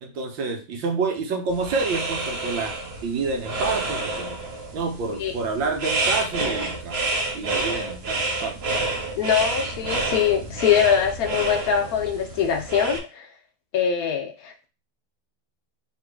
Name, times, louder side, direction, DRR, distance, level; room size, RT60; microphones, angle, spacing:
voice 1, 0.0-2.8 3.0-4.4 4.7-7.0 7.3-8.6, right 4 dB, 75° right, 4 dB, 1.5 m, -28 dB
sound 1, 1.5-13.0, right 2 dB, 55° right, 0.7 m, -29 dB
voice 2, 9.2-13.3 13.7-14.7, left 8 dB, 70° left, 5 dB, 0.8 m, -23 dB
3.5 x 3.0 x 4.5 m, 0.32 s
omnidirectional pair, 2.2 m